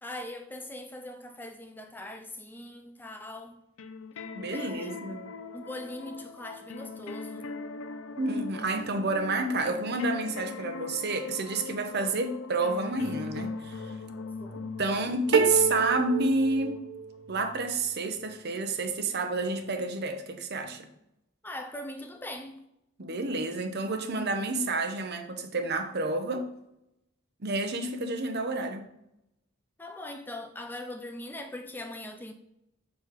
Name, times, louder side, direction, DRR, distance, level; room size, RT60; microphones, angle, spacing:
voice 1, 0.0-3.6 4.5-4.9 5.5-7.5 14.2-14.6 21.4-22.6 29.8-32.3, left 1 dB, 10° left, 0.4 m, -41 dB
sound 1, 3.8-18.4, left 4 dB, 70° left, 0.5 m, -41 dB
voice 2, 4.3-5.2 8.2-13.9 14.8-16.8 17.3-20.9 23.0-26.5 27.4-28.9, right 3 dB, 50° right, 0.9 m, -29 dB
sound 2, 15.3-17.3, right 4 dB, 80° right, 0.6 m, -27 dB
6.6 x 4.1 x 4.8 m
head